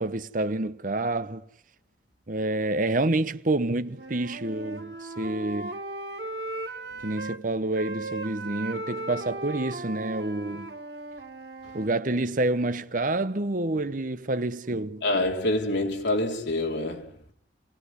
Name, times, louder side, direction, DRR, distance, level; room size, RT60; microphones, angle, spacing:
voice 1, 0.0-1.4 2.3-5.8 7.0-10.7 11.7-15.0, right 2 dB, 50° right, 1.1 m, -28 dB
Wind instrument woodwind instrument, 3.9-7.4 7.7-11.9, right 2 dB, 65° right, 2.2 m, -37 dB
voice 2, 15.0-17.3, left 1 dB, 85° left, 3.5 m, -27 dB
28.5 x 19.0 x 9.7 m
head